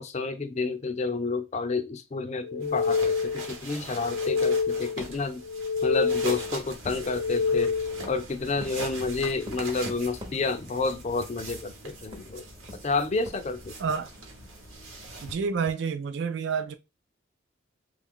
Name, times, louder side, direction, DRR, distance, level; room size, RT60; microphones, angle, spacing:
voice 1, 0.0-5.4 5.8-7.7 8.1-12.4 12.8-13.7, left 3 dB, 30° left, 0.4 m, -30 dB
sound 1, 2.4-3.6 3.9-5.1 5.4-6.6 7.0-8.1, left 5 dB, 80° left, 0.6 m, -27 dB
sound 2, 2.6-15.3, right 3 dB, 75° right, 1.0 m, -42 dB
sound 3, 5.8-15.6, left 1 dB, 25° right, 0.8 m, -48 dB
voice 2, 13.8-14.1 15.2-16.7, right 5 dB, 55° right, 0.3 m, -29 dB
3.2 x 2.4 x 3.5 m
head